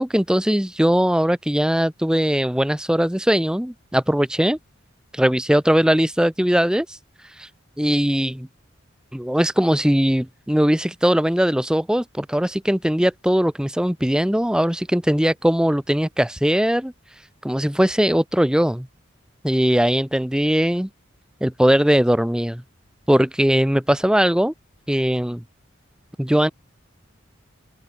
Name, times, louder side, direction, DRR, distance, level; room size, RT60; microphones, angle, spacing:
voice 1, 0.0-4.6 5.1-7.0 7.4-7.5 7.8-8.5 9.1-16.9 17.4-18.9 19.4-20.9 21.4-22.6 23.1-24.5 24.9-25.4 26.2-26.5, equal, 5° right, 0.6 m, -20 dB
head